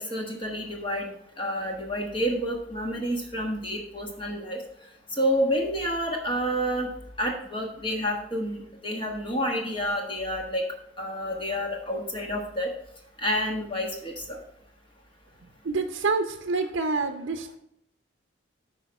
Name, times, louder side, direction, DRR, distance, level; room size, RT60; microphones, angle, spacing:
voice 1, 0.0-4.6 5.2-6.9 7.2-10.6 11.0-12.7 13.2-14.4, equal, 25° left, 1.4 m, -29 dB
voice 2, 15.6-17.6, right 3 dB, 75° right, 0.6 m, -27 dB
8.8 x 5.0 x 5.2 m
head